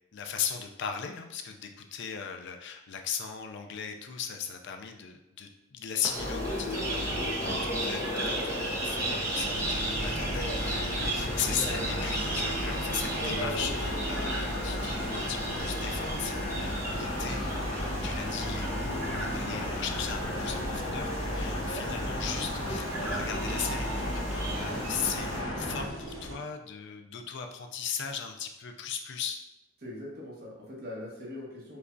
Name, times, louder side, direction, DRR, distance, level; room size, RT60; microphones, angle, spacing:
voice 1, 0.1-29.4, left 7 dB, 60° left, 5 dB, 0.4 m, -37 dB
sound 1, 6.0-25.4, right 2 dB, 15° right, 0.7 m, -37 dB
sound 2, 6.1-25.8, left 1 dB, 25° left, 0.7 m, -34 dB
sound 3, 9.5-26.4, equal, 75° right, 0.7 m, -40 dB
voice 2, 29.8-31.8, left 1 dB, 50° right, -5 dB, 1.3 m, -41 dB
5.0 x 2.3 x 2.6 m, 0.92 s
head